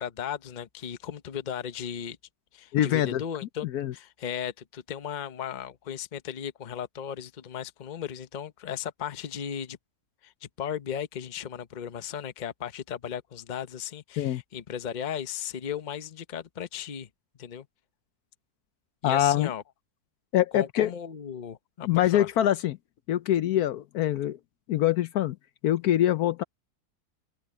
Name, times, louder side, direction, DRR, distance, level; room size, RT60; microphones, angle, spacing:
voice 1, 0.0-2.2 2.5-3.7 3.9-9.8 10.2-17.1 17.4-17.7 19.0-19.6 20.5-22.3, left 9 dB, 35° left, 0.8 m, -36 dB
voice 2, 2.7-3.2 3.6-3.9 14.2-14.4 19.0-19.5 20.3-20.9 21.8-22.8 23.1-24.4 24.7-25.4 25.6-26.4, left 12 dB, 70° left, 1.1 m, -24 dB
open air
omnidirectional pair, 1.7 m